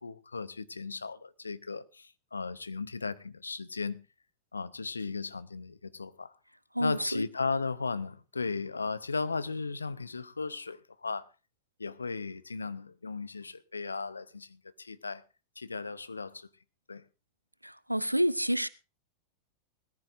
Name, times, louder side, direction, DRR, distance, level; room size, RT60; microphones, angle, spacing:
voice 1, 0.0-4.0 4.5-6.3 6.8-11.3 11.8-15.2 15.6-16.5 16.9-17.0, left 4 dB, 75° left, 0.7 m, -36 dB
voice 2, 6.7-7.3 17.6-18.7, equal, 90° right, 0.6 m, -29 dB
20.0 x 14.0 x 2.6 m
figure-of-eight pair, 90°, 0 cm